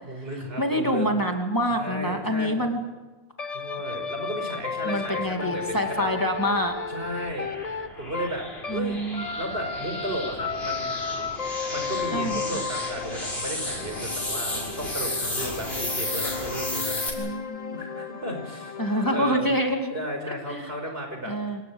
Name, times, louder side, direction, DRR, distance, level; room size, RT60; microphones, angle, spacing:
voice 1, 0.0-1.1 1.7-2.7 3.5-6.1 6.9-7.5 8.0-8.4 8.7-9.0 9.3-11.0 11.7-17.4 17.7-18.8 19.1-19.5 19.9-21.3, right 1 dB, 70° right, 4 dB, 5.8 m, -34 dB
voice 2, 0.6-2.8 4.8-6.7 8.7-9.3 12.1-12.4 17.2-17.8 18.8-19.9 20.5-20.7 21.2-21.6, equal, 20° left, 2 dB, 2.6 m, -26 dB
sound 1, 3.4-8.9 9.1-19.4, left 5 dB, 40° left, 1.1 m, -34 dB
sound 2, 5.5-17.1, left 1 dB, 75° left, 6.1 m, -34 dB
26.5 x 18.5 x 8.8 m, 1.2 s
omnidirectional pair, 1.0 m